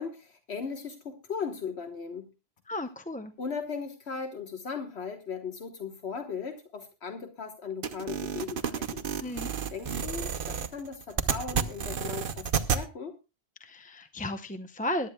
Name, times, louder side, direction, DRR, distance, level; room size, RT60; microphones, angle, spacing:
voice 1, 0.0-2.3 3.4-9.1 9.7-13.1, left 5 dB, 80° left, 5 dB, 1.5 m, -37 dB
voice 2, 2.7-3.3 9.2-9.5 13.6-15.1, left 1 dB, 10° left, 9 dB, 0.5 m, -34 dB
sound 1, 7.8-12.8, right 7 dB, 60° right, 0.9 m, -31 dB
22.0 x 11.0 x 2.2 m, 0.27 s
omnidirectional pair, 1.1 m